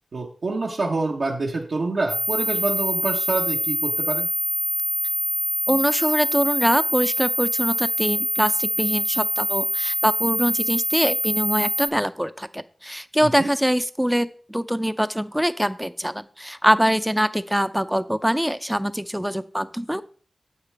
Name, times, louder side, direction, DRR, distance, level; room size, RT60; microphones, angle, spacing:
voice 1, 0.1-4.3 13.2-13.5, right 3 dB, 75° right, -2 dB, 1.2 m, -26 dB
sound 1, 2.1-11.9, left 3 dB, 80° left, 1.0 m, -25 dB
voice 2, 5.7-20.0, equal, 5° right, 12 dB, 0.6 m, -23 dB
9.8 x 7.3 x 3.4 m, 0.43 s
cardioid pair, 45°, 0 cm